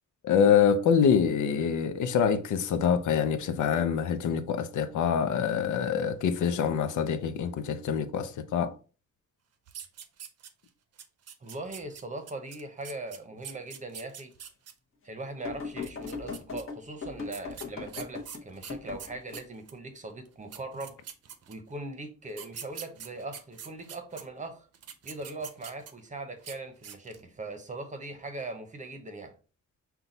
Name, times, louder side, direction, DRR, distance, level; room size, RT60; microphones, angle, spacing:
voice 1, 0.2-8.8, left 7 dB, 85° left, 0.6 m, -25 dB
sound 1, 9.7-10.7 11.0-14.7 15.7-16.6 17.3-19.8 20.3-20.4 20.5-21.7 22.3-24.2 24.7-26.1 26.4-26.6 26.8-27.3, right 8 dB, 55° right, 0.6 m, -44 dB
voice 2, 11.4-14.3 15.0-20.9 21.5-24.7 25.0-29.4, right 2 dB, 25° right, 0.8 m, -40 dB
sound 2, 15.4-19.4 22.9-23.2 24.4-24.5, left 5 dB, 45° left, 0.9 m, -39 dB
5.7 x 2.3 x 3.9 m
wide cardioid pair, 155°, 30 cm